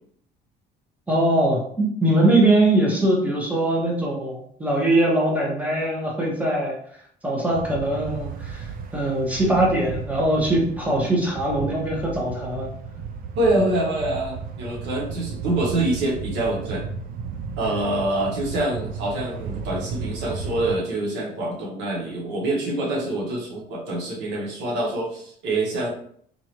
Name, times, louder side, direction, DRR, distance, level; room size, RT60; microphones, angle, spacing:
voice 1, 1.1-6.7 7.2-12.7, right 1 dB, 10° right, -3 dB, 1.1 m, -22 dB
sound 1, 7.5-20.8, right 5 dB, 55° right, 0.5 m, -34 dB
voice 2, 13.4-16.8 17.6-25.9, right 1 dB, 90° right, -2 dB, 1.3 m, -25 dB
3.8 x 3.0 x 3.0 m, 0.62 s
cardioid pair, 125°, 18 cm